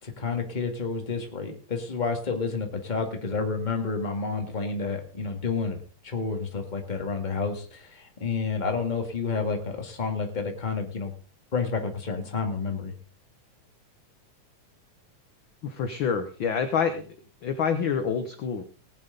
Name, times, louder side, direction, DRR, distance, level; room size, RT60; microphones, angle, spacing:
voice 1, 0.0-5.8 6.0-11.1 11.5-12.9, left 4 dB, 20° left, 3 dB, 1.7 m, -30 dB
voice 2, 15.6-17.1 17.4-18.6, left 6 dB, 60° left, 8 dB, 1.3 m, -27 dB
19.0 x 9.1 x 4.0 m, 0.40 s
omnidirectional pair, 3.4 m